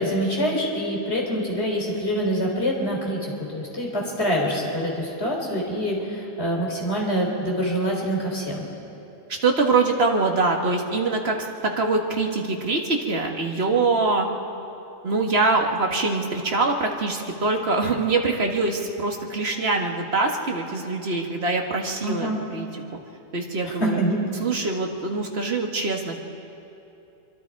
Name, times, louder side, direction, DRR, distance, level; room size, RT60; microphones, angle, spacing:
voice 1, 0.0-8.7 22.0-22.4 23.8-24.3, equal, 50° left, -2 dB, 3.9 m, -25 dB
voice 2, 9.4-11.4 11.6-14.3 15.0-22.7 23.3-24.0 24.4-26.2, right 3 dB, 50° right, 1 dB, 2.0 m, -24 dB
25.0 x 24.5 x 4.8 m, 2.8 s
omnidirectional pair, 1.4 m